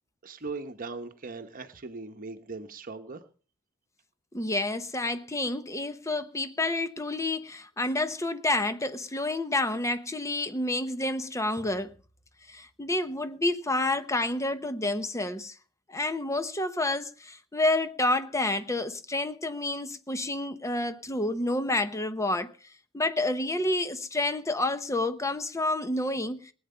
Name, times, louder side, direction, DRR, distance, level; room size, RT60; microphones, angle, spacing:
voice 1, 0.2-3.2, right 3 dB, 45° right, 1.0 m, -39 dB
voice 2, 4.3-11.9 12.5-15.5 15.9-22.5 22.9-26.5, left 2 dB, 15° left, 0.9 m, -29 dB
19.0 x 8.8 x 5.5 m
head